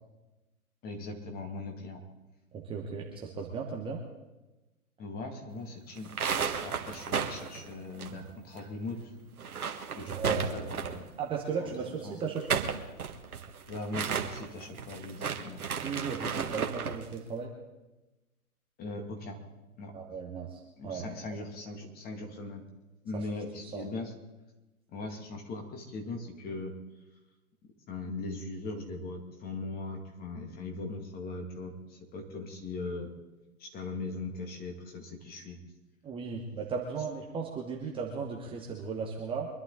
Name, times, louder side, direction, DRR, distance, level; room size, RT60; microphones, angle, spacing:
voice 1, 0.8-2.0 5.0-6.1 6.6-9.1 9.9-11.0 11.6-11.7 12.0-12.2 13.7-15.6 18.8-19.4 19.8-19.9 20.8-22.6 23.0-24.1 24.9-26.7 27.9-33.1 33.6-35.6, left 3 dB, 20° left, 3 dB, 2.2 m, -39 dB
voice 2, 2.5-4.0 10.1-10.5 11.2-12.6 15.8-17.5 19.9-21.1 23.1-23.3 23.7-23.9 36.0-39.5, right 5 dB, 10° right, -1 dB, 1.2 m, -36 dB
sound 1, 6.0-8.6 8.8-8.9 9.3-11.1 12.2-17.0, right 6 dB, 75° right, 1.7 m, -34 dB
24.0 x 11.5 x 4.0 m, 1.0 s
hypercardioid pair, 130°, 44 cm